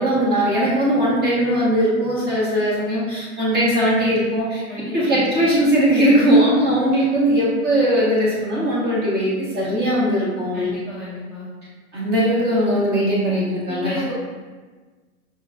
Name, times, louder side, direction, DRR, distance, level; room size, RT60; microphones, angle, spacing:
voice 1, 0.0-4.6 4.9-10.7 11.9-14.1, equal, 20° right, -6 dB, 1.3 m, -19 dB
voice 2, 4.7-5.5 10.5-11.5 13.7-14.1, left 1 dB, 5° left, -15 dB, 0.4 m, -32 dB
5.7 x 2.8 x 2.4 m, 1.4 s
hypercardioid pair, 135°, 45 cm